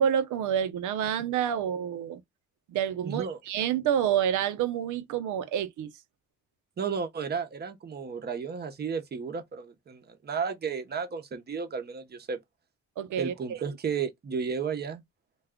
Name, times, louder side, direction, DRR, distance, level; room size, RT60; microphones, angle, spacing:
voice 1, 0.0-2.2 2.7-5.9 13.0-13.6, right 9 dB, 80° right, 0.6 m, -28 dB
voice 2, 3.0-3.4 6.8-12.4 13.2-15.0, right 6 dB, 35° right, 0.7 m, -33 dB
2.4 x 2.2 x 3.5 m
cardioid pair, 90°, 30 cm